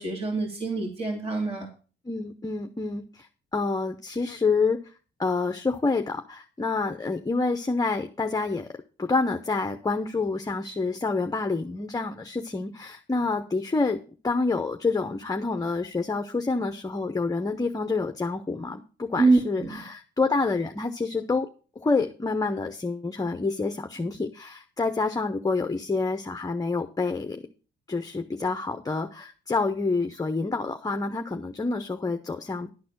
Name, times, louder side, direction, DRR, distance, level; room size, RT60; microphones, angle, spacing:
voice 1, 0.0-1.7 19.2-19.7, right 3 dB, 30° right, 0 dB, 2.4 m, -25 dB
voice 2, 2.1-4.8 5.2-8.7 9.0-21.5 21.8-27.4 27.9-32.7, left 3 dB, 20° left, 7 dB, 0.8 m, -28 dB
11.5 x 4.1 x 8.0 m, 0.37 s
cardioid pair, 90°, 20 cm